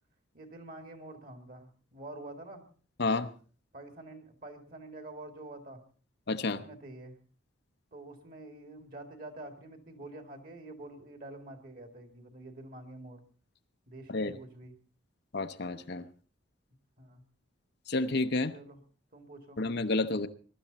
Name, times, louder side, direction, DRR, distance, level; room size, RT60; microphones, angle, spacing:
voice 1, 0.3-2.6 3.7-5.8 6.5-7.1 7.9-13.2 13.9-14.8 17.0-17.2 18.5-18.8 19.1-19.6, right 2 dB, 45° right, 6 dB, 2.4 m, -47 dB
voice 2, 6.3-6.6 14.1-14.3 15.3-16.0 17.9-18.5 19.6-20.3, left 3 dB, 50° left, 10 dB, 0.7 m, -30 dB
21.5 x 12.0 x 4.1 m, 0.41 s
head